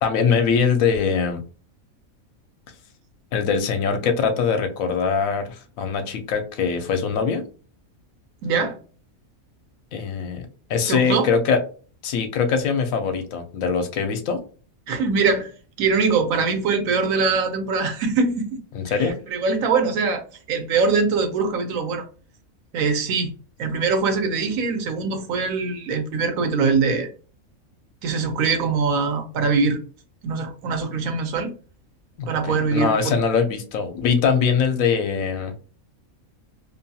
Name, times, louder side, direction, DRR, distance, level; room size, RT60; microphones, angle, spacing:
voice 1, 0.0-1.4 3.3-7.4 9.9-11.6 12.0-14.4 18.7-19.2 32.2-35.5, left 6 dB, 80° left, 7 dB, 1.0 m, -22 dB
voice 2, 8.4-8.8 10.9-11.3 14.9-15.5 15.8-18.5 18.9-22.0 22.7-23.3 23.6-27.1 28.0-29.8 30.2-31.5 32.3-33.2, right 4 dB, 75° right, 6 dB, 1.0 m, -22 dB
2.7 x 2.3 x 2.7 m, 0.38 s
omnidirectional pair, 1.4 m